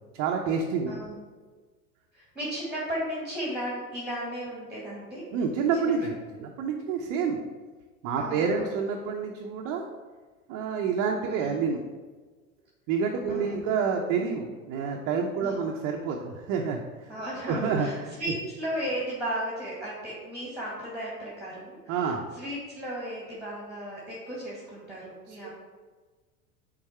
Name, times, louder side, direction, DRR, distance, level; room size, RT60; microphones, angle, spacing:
voice 1, 0.1-0.9 5.3-6.1 6.4-7.4 8.0-9.8 10.5-11.8 12.9-17.1 17.4-18.1 21.9-22.2 25.3-25.5, right 5 dB, 45° right, 1 dB, 0.8 m, -28 dB
voice 2, 0.9-1.2 2.1-5.3 5.7-5.8 8.2-8.7 11.3-11.5 13.3-13.7 15.4-15.6 17.1-25.5, equal, ahead, -6 dB, 2.0 m, -35 dB
6.3 x 4.0 x 4.4 m, 1.4 s
hypercardioid pair, 90°, 43 cm